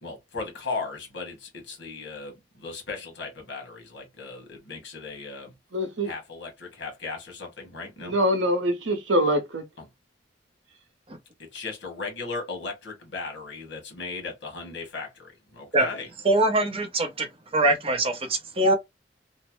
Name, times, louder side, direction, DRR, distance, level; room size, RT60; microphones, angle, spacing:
voice 1, 0.0-5.5 6.0-8.1 9.8-9.9 11.4-16.1, left 4 dB, 70° left, 1.5 m, -37 dB
voice 2, 5.7-6.1 8.0-9.6, equal, 75° right, 0.8 m, -24 dB
voice 3, 16.2-17.3 17.5-18.7, right 1 dB, 30° right, 0.7 m, -22 dB
3.0 x 2.1 x 2.9 m
head